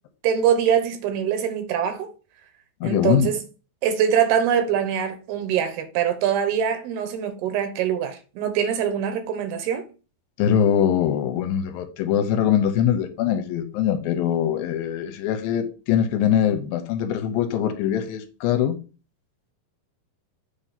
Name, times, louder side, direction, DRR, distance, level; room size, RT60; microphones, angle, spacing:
voice 1, 0.2-2.1 2.8-3.4 3.8-9.8, right 8 dB, 90° right, 3.0 m, -23 dB
voice 2, 2.8-3.3 10.4-18.8, left 9 dB, 80° left, 2.4 m, -22 dB
6.8 x 2.7 x 5.7 m
omnidirectional pair, 4.3 m